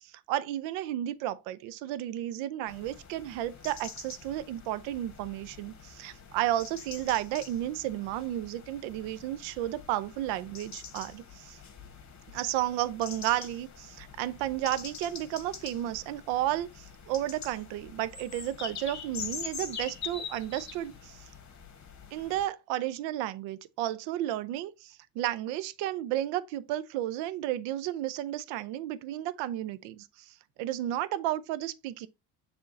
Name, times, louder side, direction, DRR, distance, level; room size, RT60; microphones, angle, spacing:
voice 1, 0.0-11.6 12.3-21.3 22.1-32.1, right 13 dB, 85° right, 0.7 m, -33 dB
sound 1, 2.7-22.5, left 6 dB, 40° left, 1.5 m, -45 dB
6.9 x 3.6 x 4.0 m
supercardioid pair, 80°, 44 cm